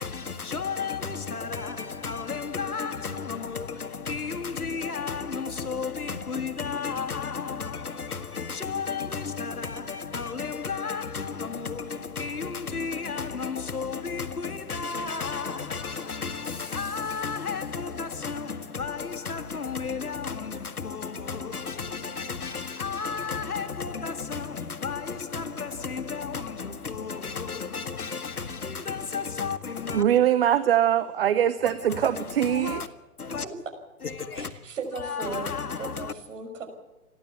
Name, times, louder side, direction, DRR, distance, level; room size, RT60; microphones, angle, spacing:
voice 1, 0.0-30.0 31.7-32.9 33.2-33.5 34.0-34.5 35.0-36.1, left 5 dB, 80° left, 2.0 m, -33 dB
voice 2, 29.9-32.8, right 10 dB, 40° right, 0.9 m, -22 dB
voice 3, 34.3-36.7, right 3 dB, 55° right, 5.8 m, -37 dB
29.0 x 11.5 x 8.3 m
figure-of-eight pair, 130°, 44 cm